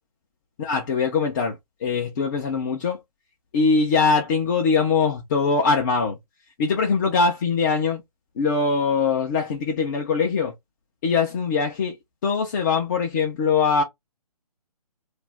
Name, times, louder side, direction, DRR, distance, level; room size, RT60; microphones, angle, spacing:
voice 1, 0.6-3.0 3.5-6.2 6.6-8.0 8.4-10.5 11.0-11.9 12.2-13.8, left 5 dB, 30° left, 0.6 m, -22 dB
2.5 x 2.0 x 3.3 m
figure-of-eight pair, 145°, 20 cm